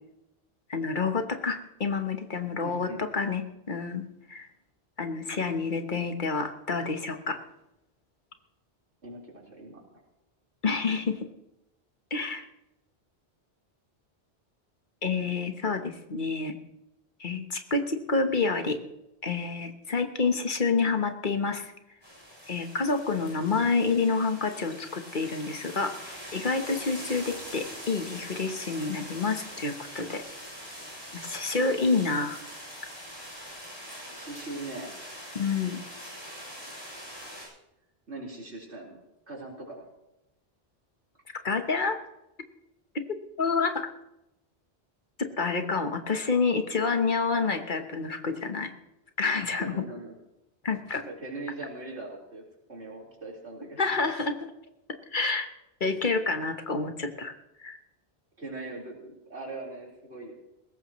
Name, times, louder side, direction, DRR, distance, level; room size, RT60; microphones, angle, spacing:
voice 1, 0.7-4.5 5.0-7.4 10.6-11.2 12.1-12.4 15.0-16.6 17.2-18.8 19.2-21.7 22.5-26.0 26.3-30.2 31.1-32.4 35.3-35.8 41.4-42.0 42.9-43.9 45.2-48.7 49.2-49.8 50.6-51.0 53.8-54.5 55.1-55.5 55.8-57.3 57.6-57.8, left 4 dB, 50° left, 7 dB, 1.3 m, -28 dB
voice 2, 2.6-3.1 9.0-9.8 34.1-34.9 38.1-39.9 49.6-50.1 51.2-52.4 52.7-53.8 58.4-60.3, right 2 dB, 90° right, -3 dB, 4.5 m, -40 dB
sound 1, 22.0-37.5, equal, 25° left, 7.3 m, -43 dB
20.0 x 16.5 x 3.1 m, 0.90 s
omnidirectional pair, 1.1 m